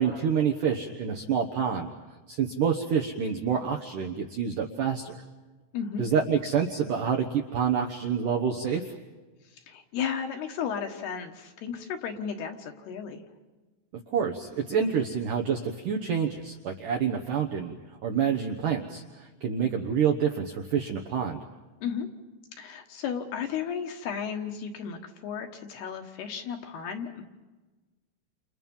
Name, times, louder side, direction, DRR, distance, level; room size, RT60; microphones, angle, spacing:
voice 1, 0.0-1.9 2.3-5.2 6.0-8.8 14.1-17.8 18.0-21.4, right 7 dB, 70° right, 1 dB, 2.0 m, -27 dB
voice 2, 5.7-6.1 9.5-13.2 21.8-22.1 22.5-27.2, left 7 dB, 65° left, 4 dB, 3.1 m, -34 dB
29.5 x 29.0 x 5.5 m, 1.2 s
omnidirectional pair, 5.6 m